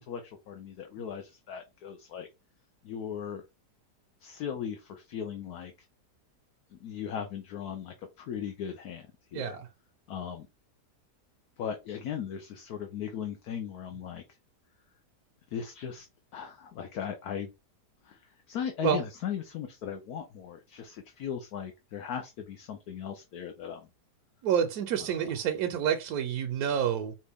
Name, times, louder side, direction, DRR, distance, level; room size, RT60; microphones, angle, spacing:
voice 1, 0.0-2.3 2.8-3.4 4.2-5.7 6.7-9.5 10.1-10.5 11.6-14.2 15.5-16.1 16.3-17.5 18.0-23.9 25.2-25.3, left 8 dB, 70° left, 1.2 m, -38 dB
voice 2, 9.3-9.7 18.8-19.0 24.4-27.1, right 8 dB, 70° right, 1.1 m, -28 dB
5.3 x 2.5 x 3.4 m
omnidirectional pair, 1.8 m